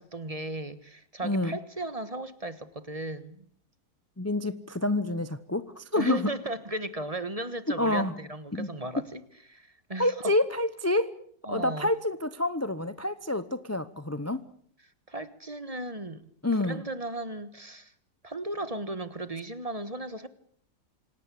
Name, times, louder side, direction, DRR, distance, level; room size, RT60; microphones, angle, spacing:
voice 1, 0.0-3.5 5.9-9.2 9.5-10.3 11.4-11.9 15.1-16.2 16.6-17.9 18.2-20.3, right 1 dB, 25° right, 1.3 m, -36 dB
voice 2, 1.2-1.6 4.2-6.3 7.8-8.1 8.5-8.7 10.0-11.2 11.5-14.4 16.4-16.8, left 1 dB, 15° left, 0.7 m, -28 dB
26.5 x 18.0 x 8.5 m
omnidirectional pair, 1.8 m